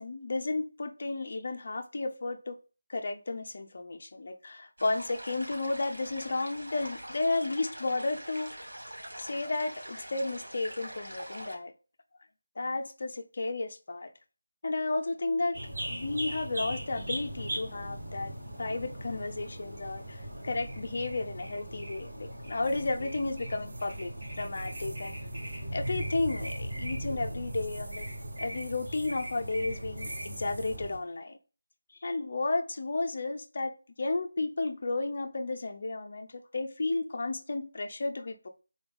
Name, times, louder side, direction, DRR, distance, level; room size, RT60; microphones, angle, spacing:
voice 1, 0.0-2.6 2.9-8.5 9.2-11.7 12.6-14.1 14.6-18.3 18.6-25.2 25.7-28.1 28.4-31.4 31.9-38.5, left 2 dB, 45° left, 0.6 m, -33 dB
sound 1, 4.8-11.6, right 1 dB, 85° right, 2.3 m, -44 dB
sound 2, 15.5-31.0, right 1 dB, 45° right, 2.5 m, -39 dB
sound 3, 22.6-30.8, right 2 dB, 65° right, 0.5 m, -46 dB
3.8 x 3.4 x 3.5 m
figure-of-eight pair, 170°, 0 cm